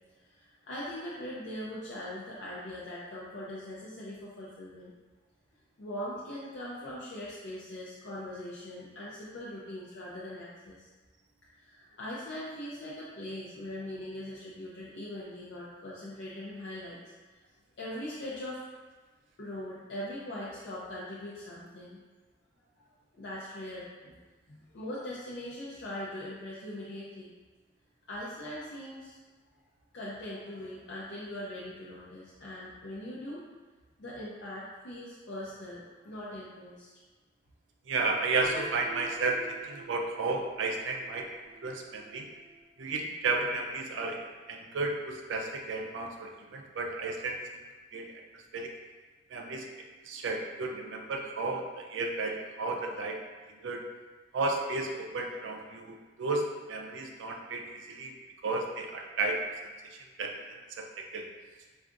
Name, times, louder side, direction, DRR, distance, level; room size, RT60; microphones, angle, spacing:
voice 1, 0.3-4.9 5.8-10.9 11.6-17.0 17.8-18.8 19.4-22.0 22.8-22.9 23.1-24.1 24.5-27.3 28.1-29.2 29.9-33.4 34.0-36.9, left 1 dB, 70° left, -7 dB, 0.5 m, -41 dB
voice 2, 37.9-41.3 41.6-42.3 42.8-47.6 47.9-48.7 49.3-49.7 50.0-53.2 53.6-53.8 54.3-58.2 58.4-59.4 60.2-60.4 60.8-60.9 61.1-61.3, right 3 dB, 85° right, 1 dB, 0.4 m, -33 dB
Piano, 38.4-44.3, right 3 dB, 15° right, 0.3 m, -49 dB
4.5 x 2.4 x 2.5 m, 1.3 s
head